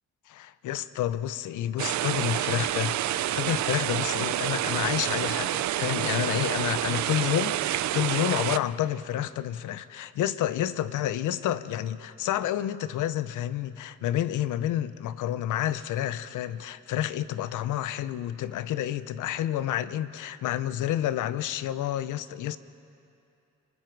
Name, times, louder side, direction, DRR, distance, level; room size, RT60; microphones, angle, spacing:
voice 1, 0.3-22.6, left 12 dB, 85° left, 15 dB, 0.7 m, -29 dB
sound 1, 1.8-8.6, right 13 dB, 70° right, 0.5 m, -28 dB
30.0 x 19.5 x 4.7 m, 2.6 s
cardioid pair, 105°, 30 cm